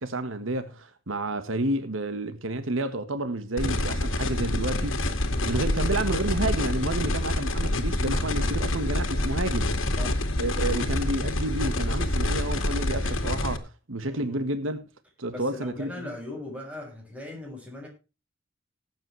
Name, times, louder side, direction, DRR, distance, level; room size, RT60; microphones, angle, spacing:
voice 1, 0.0-5.0 5.4-9.7 10.4-14.8 15.2-16.1, right 2 dB, 85° right, 1.5 m, -30 dB
sound 1, 3.6-13.6, left 1 dB, 90° left, 2.1 m, -27 dB
voice 2, 14.0-14.4 15.3-17.9, left 2 dB, 5° right, 6.7 m, -39 dB
19.0 x 8.9 x 3.2 m
head